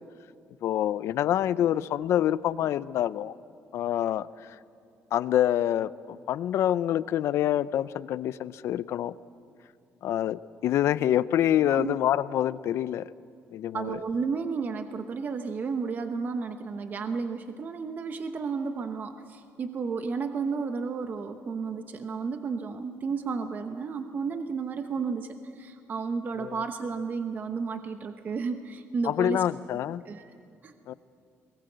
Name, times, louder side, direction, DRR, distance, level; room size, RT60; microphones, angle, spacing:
voice 1, 0.6-3.3 3.7-4.6 5.1-9.1 10.0-13.1 13.5-14.0 26.4-26.6 29.0-30.0 30.9-31.0, left 11 dB, 65° left, 16 dB, 0.6 m, -26 dB
voice 2, 13.7-29.4 30.1-30.3 30.6-30.7, right 5 dB, 35° right, 7 dB, 1.0 m, -32 dB
22.5 x 21.0 x 7.9 m, 2.4 s
cardioid pair, 140°, 5 cm